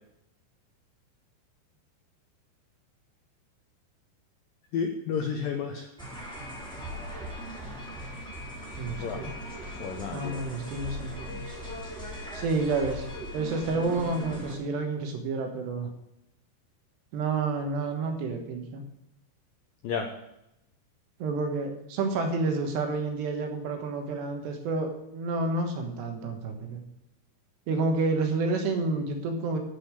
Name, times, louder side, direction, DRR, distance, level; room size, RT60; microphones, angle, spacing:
voice 1, 4.7-5.9 9.0-9.2 9.8-10.4 19.8-20.1, left 6 dB, 85° left, 3 dB, 2.0 m, -31 dB
sound 1, 6.0-14.5, equal, ahead, 2.6 m, -39 dB
voice 2, 8.8-9.3 10.1-11.6 12.3-13.1 13.3-15.9 17.1-18.8 21.2-26.8 27.7-29.6, right 3 dB, 70° right, 4 dB, 3.4 m, -29 dB
11.5 x 5.6 x 8.8 m, 0.85 s
omnidirectional pair, 5.3 m